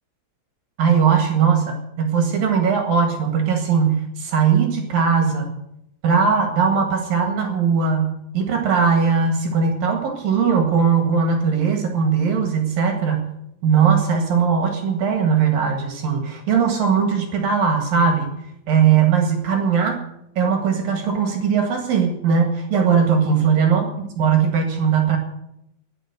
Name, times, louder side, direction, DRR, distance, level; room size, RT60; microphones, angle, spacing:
voice 1, 0.8-5.5 6.0-13.3 13.6-18.3 18.7-20.0 20.4-23.9 24.2-25.2, right 6 dB, 55° right, 4 dB, 3.0 m, -19 dB
10.5 x 10.5 x 9.8 m, 0.79 s
omnidirectional pair, 5.7 m